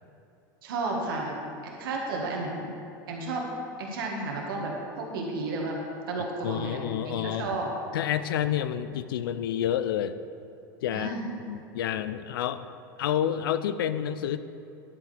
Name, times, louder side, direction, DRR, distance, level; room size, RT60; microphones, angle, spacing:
voice 1, 0.6-1.3 1.8-2.7 3.1-3.5 3.8-5.7 6.1-6.8 7.0-7.7 10.9-11.3, right 3 dB, 80° right, -1 dB, 1.6 m, -32 dB
voice 2, 6.4-7.6 7.9-10.2 10.8-11.2 11.5-12.7 13.0-14.4, left 10 dB, 85° left, 13 dB, 0.4 m, -29 dB
11.0 x 8.1 x 3.3 m, 2.6 s
hypercardioid pair, 105°, 12 cm